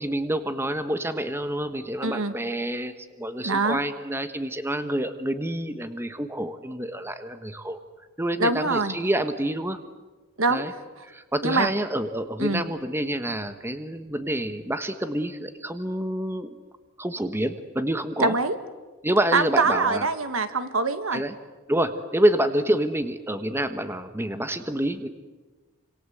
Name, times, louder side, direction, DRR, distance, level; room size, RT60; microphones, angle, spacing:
voice 1, 0.0-7.8 8.2-9.8 10.5-10.7 11.0-16.6 17.0-18.4 19.0-20.1 21.1-21.3 21.7-25.1, right 1 dB, 10° right, 9 dB, 1.3 m, -27 dB
voice 2, 2.0-2.3 3.4-3.8 8.4-8.9 10.4-10.6 11.4-11.7 12.4-12.6 18.2-18.6 19.3-21.2, right 3 dB, 80° right, 10 dB, 1.9 m, -23 dB
28.0 x 26.5 x 8.0 m, 1.2 s
head